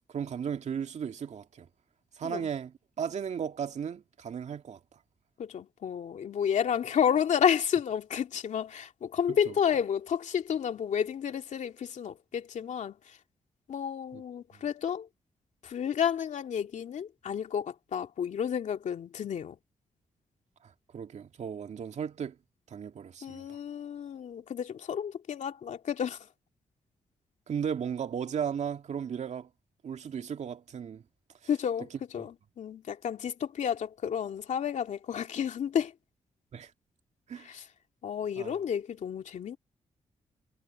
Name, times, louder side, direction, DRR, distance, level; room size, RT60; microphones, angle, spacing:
voice 1, 0.1-1.7 2.1-4.8 9.3-9.5 14.1-14.2 14.5-14.6 20.6-22.4 22.7-23.6 27.5-29.5 29.8-31.0 32.2-32.3 36.5-36.7 37.3-37.5 38.4-38.6, right 7 dB, 65° right, 2.0 m, -36 dB
voice 2, 5.4-12.9 13.7-15.1 15.6-19.6 23.2-26.2 31.5-31.9 32.1-35.9 37.5-37.6 38.0-39.6, left 8 dB, 70° left, 2.6 m, -31 dB
cardioid pair, 60°, 13 cm